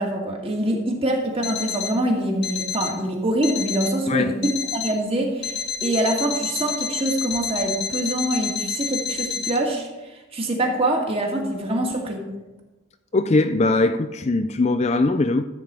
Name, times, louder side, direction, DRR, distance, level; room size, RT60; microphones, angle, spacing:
voice 1, 0.0-5.6 5.8-9.9 10.3-12.2, right 1 dB, 25° right, 0 dB, 2.0 m, -24 dB
Alarm, 1.4-2.0 2.4-3.0 3.4-4.0 4.4-5.0 5.4-9.6, left 6 dB, 50° left, 0.9 m, -29 dB
voice 2, 13.1-15.5, left 2 dB, 30° left, 9 dB, 0.4 m, -20 dB
14.0 x 5.0 x 8.2 m, 1.1 s
head